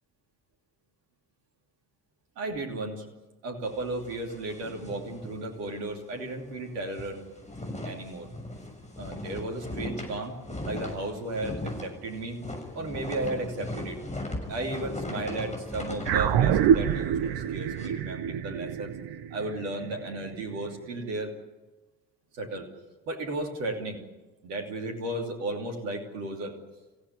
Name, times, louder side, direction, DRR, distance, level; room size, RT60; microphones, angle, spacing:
voice 1, 2.4-3.1 3.4-7.2 7.8-8.3 9.0-10.3 10.6-12.4 12.7-18.9 19.3-21.3 22.4-22.7 23.1-24.0 24.4-26.5, right 2 dB, 75° right, 2 dB, 3.0 m, -34 dB
sound 1, 3.6-5.9 6.2-6.4 6.7-17.9, left 1 dB, 15° left, 6.7 m, -39 dB
sound 2, 16.1-20.7, right 9 dB, 50° right, 1.2 m, -26 dB
27.0 x 16.5 x 9.7 m, 1.2 s
figure-of-eight pair, 45°, 49 cm